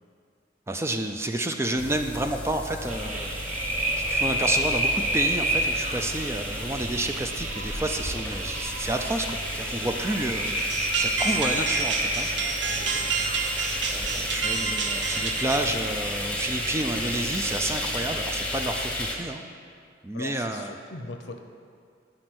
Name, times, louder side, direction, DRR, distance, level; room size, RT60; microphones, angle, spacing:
voice 1, 0.7-10.7 11.0-12.3 13.9-19.4 20.0-20.7, right 1 dB, 15° right, 5 dB, 0.4 m, -30 dB
sound 1, 1.8-19.1, left 1 dB, 5° left, 1.0 m, -34 dB
sound 2, 2.9-18.5, right 1 dB, 40° right, 1.2 m, -31 dB
sound 3, 10.5-15.6, right 5 dB, 80° right, 0.9 m, -29 dB
voice 2, 11.2-11.7 12.7-13.1 20.1-21.4, left 3 dB, 80° left, 5 dB, 0.7 m, -40 dB
10.5 x 5.4 x 7.8 m, 2.2 s
head